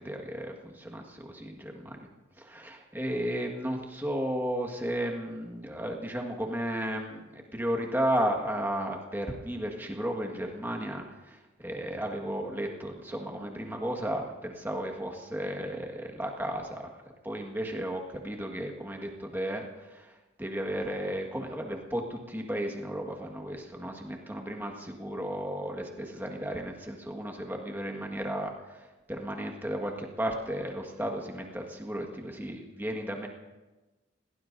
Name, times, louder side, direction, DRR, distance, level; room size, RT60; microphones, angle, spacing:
voice 1, 0.0-2.0 2.4-16.9 17.2-20.1 20.4-33.3, equal, 10° right, 1 dB, 1.6 m, -34 dB
28.0 x 17.5 x 2.7 m, 1.2 s
head